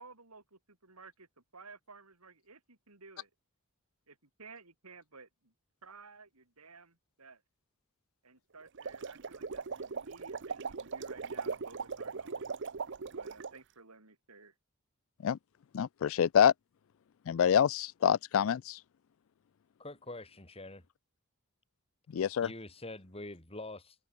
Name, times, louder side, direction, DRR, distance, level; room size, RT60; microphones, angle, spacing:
voice 1, 0.0-3.3 4.1-5.5 5.8-7.4 8.2-12.6 13.1-14.5, right 4 dB, 90° right, 4.5 m, -55 dB
sound 1, 8.7-13.6, right 5 dB, 55° right, 0.7 m, -39 dB
voice 2, 15.7-16.5 17.3-18.8 22.1-22.5, left 8 dB, 65° left, 0.3 m, -26 dB
voice 3, 19.8-20.8 22.4-24.0, left 2 dB, 25° left, 4.6 m, -45 dB
open air
head